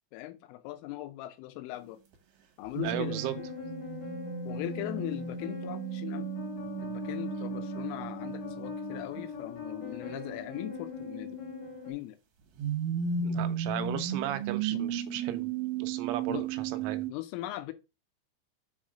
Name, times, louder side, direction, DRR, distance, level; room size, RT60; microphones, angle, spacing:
voice 1, 0.1-2.0 2.6-3.5 4.5-6.3 6.8-11.4 11.9-12.2 14.7-14.8 16.3-16.4 17.1-17.7, left 15 dB, 85° left, 3.3 m, -39 dB
sound 1, 2.1-2.2 2.7-9.4 12.6-17.1, right 6 dB, 65° right, 2.3 m, -35 dB
sound 2, 2.8-11.9, left 5 dB, 55° left, 1.1 m, -41 dB
voice 2, 2.8-3.3 13.2-15.5 15.8-17.1, right 13 dB, 80° right, 3.2 m, -35 dB
7.6 x 4.1 x 3.7 m
omnidirectional pair, 5.6 m